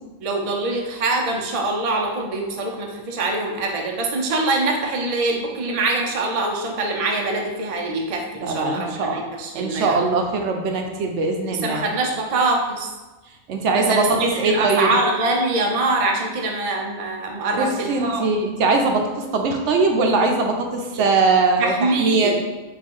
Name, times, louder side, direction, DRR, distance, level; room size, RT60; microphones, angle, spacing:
voice 1, 0.2-10.1 11.4-12.9 13.7-14.1 14.4-18.3 20.9-21.0 21.6-22.3, right 2 dB, 50° right, 0 dB, 0.4 m, -24 dB
voice 2, 8.4-9.2 9.5-11.9 13.5-14.9 17.5-21.7 22.0-22.3, right 3 dB, 70° right, 3 dB, 0.8 m, -21 dB
3.7 x 2.4 x 4.5 m, 1.2 s
omnidirectional pair, 1.3 m